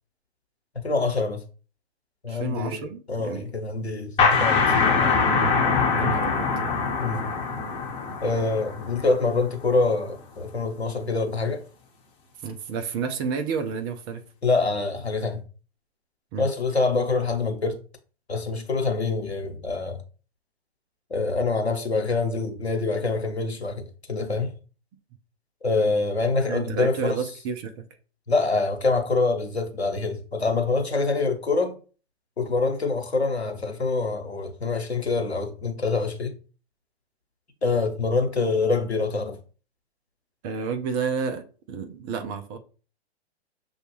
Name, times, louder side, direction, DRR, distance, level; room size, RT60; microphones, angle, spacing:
voice 1, 0.7-1.4 2.2-4.1 4.4-5.2 7.0-7.3 8.2-11.6 14.4-15.4 16.4-17.8 18.3-20.0 21.1-24.5 25.6-27.2 28.3-31.7 32.4-36.3 37.6-39.4, left 3 dB, 90° left, 0.9 m, -25 dB
voice 2, 2.3-3.4 6.0-6.5 12.4-14.2 16.3-16.5 26.5-27.9 40.4-42.6, right 6 dB, 25° right, 0.4 m, -30 dB
sound 1, 4.2-9.6, left 4 dB, 20° left, 1.2 m, -23 dB
6.4 x 2.3 x 3.1 m
figure-of-eight pair, 110°, 32 cm